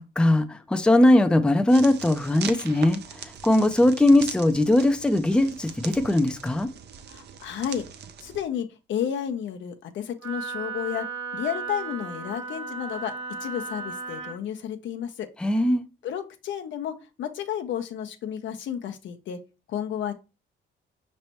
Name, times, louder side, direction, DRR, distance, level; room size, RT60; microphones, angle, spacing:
voice 1, 0.0-6.7 15.4-15.8, left 1 dB, 5° left, 0.5 m, -20 dB
sound 1, 1.7-8.5, right 7 dB, 55° right, 0.6 m, -40 dB
voice 2, 7.1-7.9 8.2-11.1 11.3-13.1 13.4-15.3 16.0-19.4 19.7-20.1, left 9 dB, 70° left, 0.7 m, -32 dB
Wind instrument woodwind instrument, 10.2-14.4, right 4 dB, 85° right, 1.1 m, -35 dB
5.2 x 3.2 x 2.9 m
cardioid pair, 90°, 20 cm